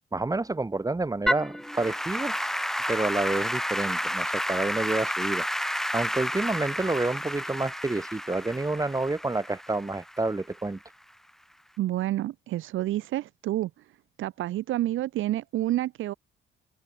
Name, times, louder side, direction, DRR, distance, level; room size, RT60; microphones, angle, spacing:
voice 1, 0.1-2.5 2.9-5.5 5.9-10.8, right 2 dB, 15° right, 4.5 m, -29 dB
Applause / Keyboard (musical), 1.3-10.6, equal, ahead, 1.3 m, -31 dB
voice 2, 11.8-13.7 14.2-16.1, right 14 dB, 80° right, 1.7 m, -29 dB
open air
cardioid pair, 90°, 20 cm